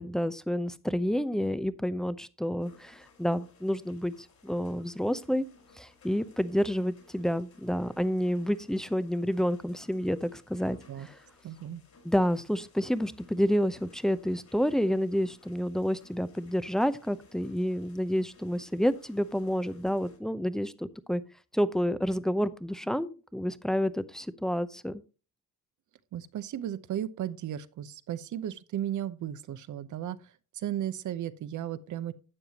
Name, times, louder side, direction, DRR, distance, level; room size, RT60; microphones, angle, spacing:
voice 1, 0.0-4.1 4.4-5.4 5.8-11.2 12.0-21.2 21.5-25.0, equal, ahead, 0.7 m, -29 dB
sound 1, 2.6-20.2, left 4 dB, 55° left, 4.5 m, -60 dB
voice 2, 11.4-11.8 26.1-30.2 30.5-32.1, right 11 dB, 60° right, 0.9 m, -35 dB
12.0 x 7.8 x 2.9 m
cardioid pair, 80°, 34 cm